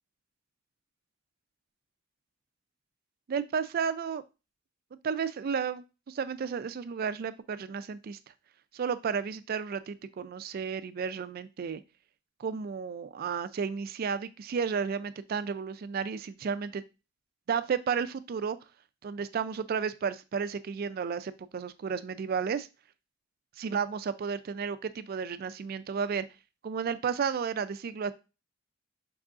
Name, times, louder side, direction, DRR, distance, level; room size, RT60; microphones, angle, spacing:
voice 1, 3.3-4.2 5.0-8.2 8.7-11.8 12.4-16.8 17.5-18.6 19.0-22.7 23.6-26.3 26.6-28.1, right 6 dB, 50° right, 14 dB, 0.3 m, -32 dB
5.4 x 3.6 x 2.4 m, 0.29 s
head